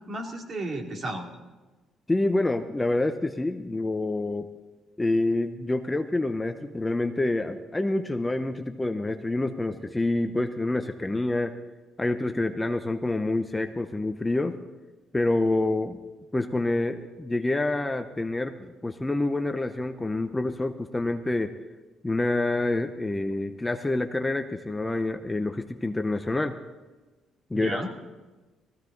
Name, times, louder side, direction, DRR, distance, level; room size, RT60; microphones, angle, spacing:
voice 1, 0.1-1.3 27.5-27.9, right 1 dB, 45° right, 2 dB, 2.6 m, -33 dB
voice 2, 2.1-4.5 5.0-11.6 12.0-14.6 15.1-16.0 16.3-21.5 22.0-26.5 27.5-27.8, left 2 dB, 15° left, 6 dB, 0.7 m, -27 dB
18.5 x 15.5 x 3.9 m, 1.2 s
cardioid pair, 95°, 0 cm